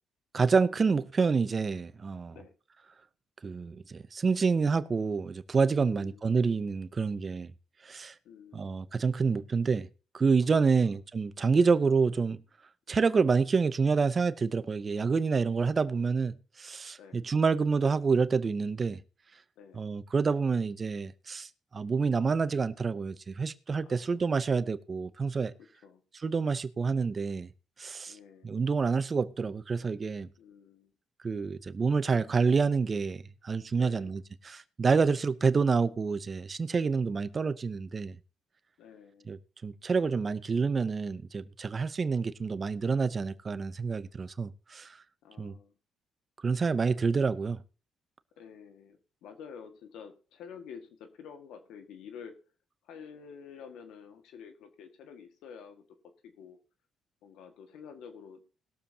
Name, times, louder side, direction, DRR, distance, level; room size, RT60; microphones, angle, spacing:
voice 1, 0.3-2.4 3.4-7.5 7.8-8.1 8.5-9.9 10.1-12.4 12.9-19.0 19.7-25.5 26.2-27.5 27.8-28.2 28.4-30.3 31.2-38.2 39.3-45.0 45.4-45.5 46.4-47.6, right 5 dB, 35° right, 0.7 m, -28 dB
voice 2, 5.7-6.2 8.2-8.7 10.5-11.0 11.6-11.7 15.8-16.1 17.0-17.2 19.6-19.8 23.8-24.4 25.8-26.0 28.1-28.6 30.4-30.9 33.8-34.1 38.8-39.3 45.2-45.7 48.4-52.3 52.8-55.8 56.2-56.6 57.2-58.4, left 7 dB, 85° left, 1.8 m, -49 dB
20.5 x 7.1 x 2.8 m
cardioid pair, 90°, 0 cm